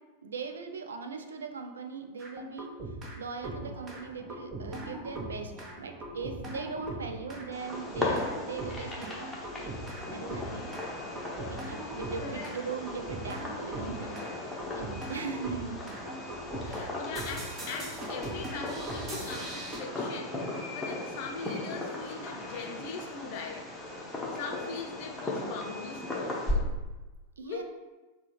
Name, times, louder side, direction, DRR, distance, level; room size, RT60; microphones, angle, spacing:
voice 1, 0.2-5.5 5.8-9.7 10.1-10.8 11.4-15.8 27.4-27.6, right 5 dB, 70° right, 5 dB, 0.4 m, -40 dB
sound 1, 2.2-3.2 3.4-19.8, right 1 dB, 25° right, 0.8 m, -40 dB
Fireworks, 7.5-26.5, left 2 dB, 5° left, 0.9 m, -38 dB
voice 2, 12.2-12.5 16.6-20.4 20.7-23.7 24.3-26.7 27.4-27.6, left 4 dB, 50° left, 2 dB, 0.5 m, -40 dB
5.9 x 2.3 x 3.1 m, 1.2 s
figure-of-eight pair, 90°, 0 cm